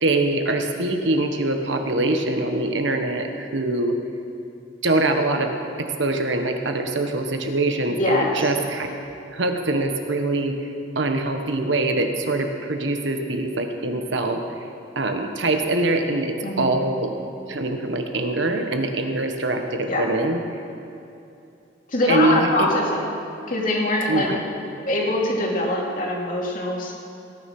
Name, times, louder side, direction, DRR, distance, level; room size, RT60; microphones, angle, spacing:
voice 1, 0.0-4.0 4.8-5.5 5.8-8.9 9.3-10.6 10.9-14.4 14.9-17.1 17.5-20.4 22.1-22.7 24.1-24.4, right 2 dB, 70° right, 5 dB, 1.3 m, -23 dB
voice 2, 7.9-8.5 16.4-16.9 19.8-20.1 21.9-23.0 23.5-24.3 24.8-26.9, left 1 dB, 45° left, -2 dB, 2.7 m, -23 dB
17.5 x 9.7 x 6.1 m, 2.7 s
head